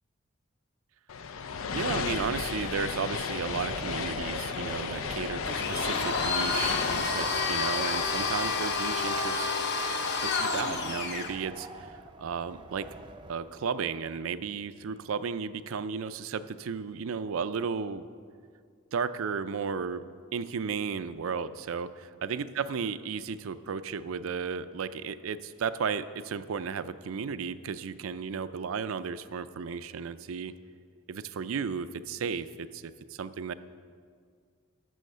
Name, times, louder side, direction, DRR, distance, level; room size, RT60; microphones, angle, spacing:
sound 1, 1.1-8.5, left 5 dB, 80° left, 0.6 m, -34 dB
voice 1, 1.7-9.5 10.1-12.9 13.3-18.1 18.9-20.0 20.3-30.5 31.1-33.5, right 6 dB, 80° right, 13 dB, 0.4 m, -34 dB
Wind, 3.3-13.7, right 2 dB, 25° right, 0.5 m, -46 dB
Domestic sounds home sounds, 5.5-11.4, left 4 dB, 55° left, 0.9 m, -29 dB
12.5 x 6.3 x 6.6 m, 2.1 s
head